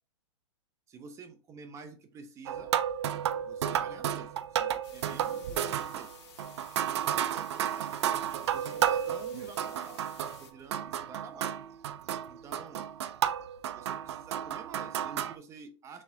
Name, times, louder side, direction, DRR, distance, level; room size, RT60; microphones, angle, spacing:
voice 1, 0.9-2.7 3.4-6.2 6.8-8.0 8.5-11.5 12.3-12.9 13.7-16.0, right 5 dB, 20° right, 9 dB, 0.6 m, -50 dB
sound 1, 2.5-10.4 10.7-15.4, right 10 dB, 65° right, 0.4 m, -32 dB
sound 2, 4.8-10.5, left 6 dB, 60° left, 1.2 m, -54 dB
4.2 x 3.4 x 2.7 m, 0.35 s
hypercardioid pair, 135°, 15 cm